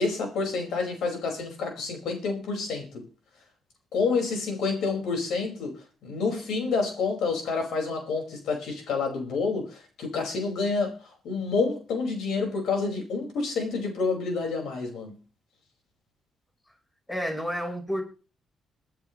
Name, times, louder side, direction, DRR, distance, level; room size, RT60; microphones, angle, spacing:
voice 1, 0.0-3.1 3.9-11.0 11.2-15.2, left 4 dB, 75° left, 5.1 m, -28 dB
voice 2, 17.1-18.0, equal, 10° left, 4.5 m, -30 dB
22.5 x 10.5 x 3.2 m
cardioid pair, 90°, 0 cm